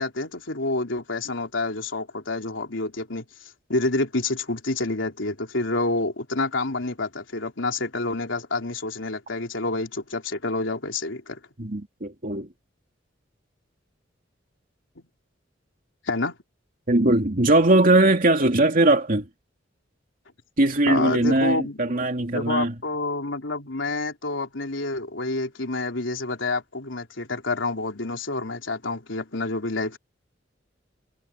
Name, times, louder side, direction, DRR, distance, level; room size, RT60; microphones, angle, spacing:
voice 1, 0.0-3.2 3.7-11.4 15.0-15.1 16.0-16.4 20.9-21.8 22.3-30.0, left 2 dB, 85° left, 3.5 m, -28 dB
voice 2, 11.6-12.5 16.9-19.3 20.6-22.7, right 2 dB, 45° right, 2.6 m, -20 dB
head